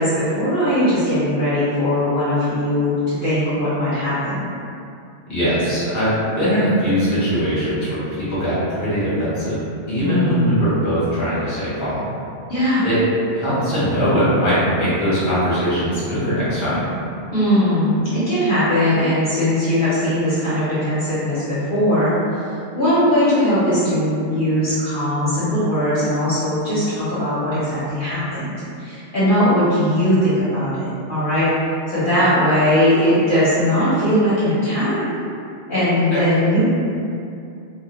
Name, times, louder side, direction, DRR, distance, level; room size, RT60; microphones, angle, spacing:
voice 1, 0.0-4.4 10.0-10.6 12.5-12.8 17.3-22.1 22.7-28.5 28.8-31.5 31.9-35.0 35.7-36.6, left 1 dB, 55° left, -13 dB, 0.8 m, -19 dB
voice 2, 5.3-9.6 9.9-12.0 12.8-13.0 13.3-16.9 36.1-36.2, equal, 15° left, -11 dB, 0.8 m, -21 dB
2.1 x 2.1 x 2.9 m, 2.5 s
omnidirectional pair, 1.2 m